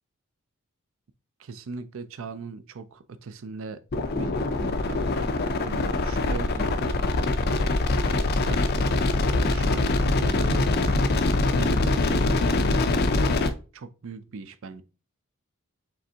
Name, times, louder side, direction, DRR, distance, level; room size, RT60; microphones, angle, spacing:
voice 1, 1.4-3.8 4.1-5.1 5.6-6.9 8.0-10.7 11.5-13.4 13.7-14.8, right 4 dB, 65° right, 0.4 m, -39 dB
sound 1, 3.9-13.5, left 2 dB, 45° left, 0.5 m, -23 dB
5.1 x 3.4 x 2.7 m
head